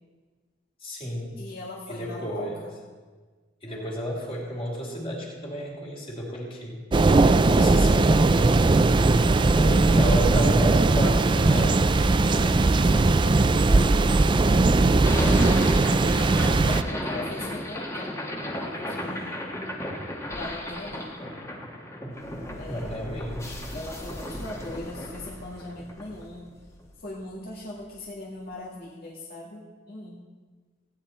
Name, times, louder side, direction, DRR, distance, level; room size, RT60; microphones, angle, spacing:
voice 1, 0.8-1.4 1.9-2.6 3.6-6.8 7.2-8.4 9.5-12.9 22.7-23.7, equal, 30° left, -3 dB, 3.0 m, -32 dB
voice 2, 1.4-2.7 9.4-10.0 12.8-15.1 16.3-18.1 18.5-19.5 20.3-21.1 22.6-23.0 23.7-26.5 27.0-30.2, left 2 dB, 55° left, -4 dB, 1.7 m, -40 dB
sound 1, 6.9-16.8, right 3 dB, 25° right, 0.4 m, -19 dB
Scaffold Collapse Mixdown, 15.0-27.2, left 1 dB, 15° left, 1.5 m, -34 dB
16.0 x 9.3 x 4.4 m, 1.4 s
head